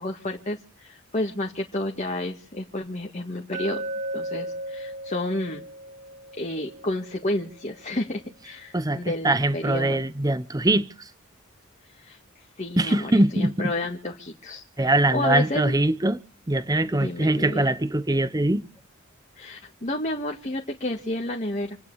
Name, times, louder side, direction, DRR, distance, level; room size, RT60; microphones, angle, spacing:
voice 1, 0.0-3.8 4.1-5.7 6.4-10.0 11.8-15.8 16.9-17.7 19.4-21.8, left 1 dB, 35° left, 1.7 m, -31 dB
Glass, 3.5-7.6, right 1 dB, 40° right, 2.0 m, -36 dB
voice 2, 8.7-10.9 12.8-13.7 14.8-16.2 16.5-18.6, right 1 dB, 20° right, 0.8 m, -22 dB
28.0 x 9.5 x 4.8 m
head